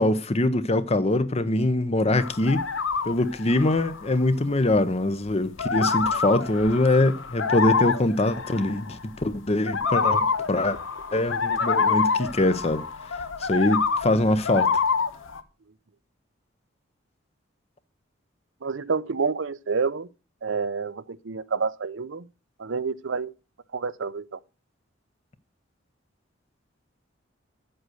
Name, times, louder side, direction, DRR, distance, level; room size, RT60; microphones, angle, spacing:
voice 1, 0.0-2.6 3.0-10.8 11.1-12.8 13.4-14.7, left 2 dB, 35° left, 0.8 m, -23 dB
sound 1, 2.1-4.1 4.5-4.8 5.3-9.4 9.7-15.4, left 5 dB, 90° left, 1.0 m, -27 dB
voice 2, 18.6-20.1 20.4-22.3 22.6-23.3 23.7-24.4, right 5 dB, 75° right, 0.6 m, -28 dB
7.9 x 7.8 x 6.3 m
head